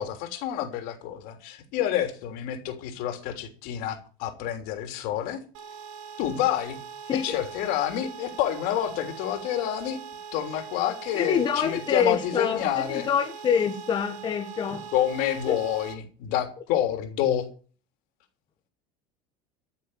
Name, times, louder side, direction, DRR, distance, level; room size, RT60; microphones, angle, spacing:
voice 1, 0.0-5.4 6.2-6.8 7.1-10.0 10.3-13.1 14.9-17.4, left 11 dB, 60° left, 3.3 m, -28 dB
sound 1, 5.5-15.9, right 7 dB, 70° right, 3.3 m, -41 dB
voice 2, 11.1-14.9 15.5-15.6, left 7 dB, 30° left, 1.6 m, -26 dB
14.0 x 7.0 x 9.2 m
supercardioid pair, 140°, 16 cm